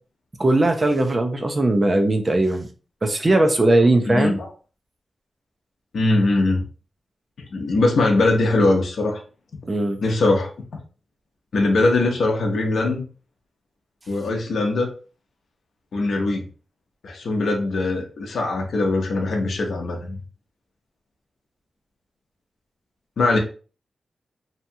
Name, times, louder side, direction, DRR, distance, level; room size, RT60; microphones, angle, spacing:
voice 1, 0.4-2.7 3.0-4.4 9.7-10.0, right 2 dB, 30° right, 5 dB, 0.4 m, -19 dB
voice 2, 4.1-4.5 5.9-6.6 7.5-9.2 10.0-10.5 11.5-13.0 14.1-14.9 15.9-16.4 17.0-20.2 23.2-23.4, left 2 dB, 75° left, 2 dB, 0.6 m, -21 dB
2.7 x 2.2 x 2.7 m, 0.36 s
wide cardioid pair, 135°, 0 cm